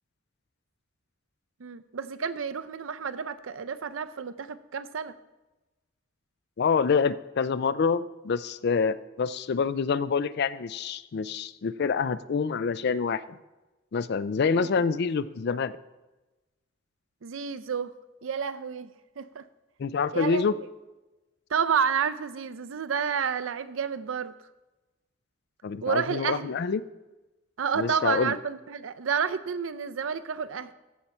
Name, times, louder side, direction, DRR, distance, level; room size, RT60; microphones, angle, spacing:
voice 1, 1.6-5.1 14.6-14.7 17.2-17.9 18.2-18.9 19.2-19.4 20.1-20.5 21.5-24.3 25.8-26.5 27.6-30.7, right 6 dB, 85° right, 13 dB, 0.5 m, -30 dB
voice 2, 6.6-13.4 13.9-15.7 19.8-20.5 25.6-26.8 27.8-28.3, left 5 dB, 55° left, 16 dB, 0.4 m, -26 dB
14.5 x 5.8 x 4.3 m, 1.1 s
head